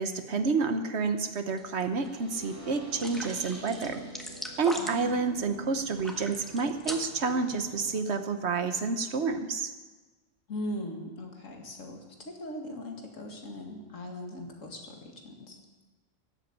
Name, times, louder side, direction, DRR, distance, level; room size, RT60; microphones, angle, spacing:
voice 1, 0.0-4.0 4.6-9.7, right 4 dB, 60° right, 9 dB, 1.3 m, -29 dB
sound 1, 1.6-2.1 2.4-2.5 3.0-5.2 6.0-7.3, equal, ahead, 1.4 m, -39 dB
sound 2, 2.0-8.0, right 1 dB, 25° right, 1.7 m, -47 dB
voice 2, 4.8-5.2 10.5-15.6, left 1 dB, 90° left, 2 dB, 2.4 m, -40 dB
14.5 x 8.3 x 9.8 m, 1.2 s
omnidirectional pair, 1.3 m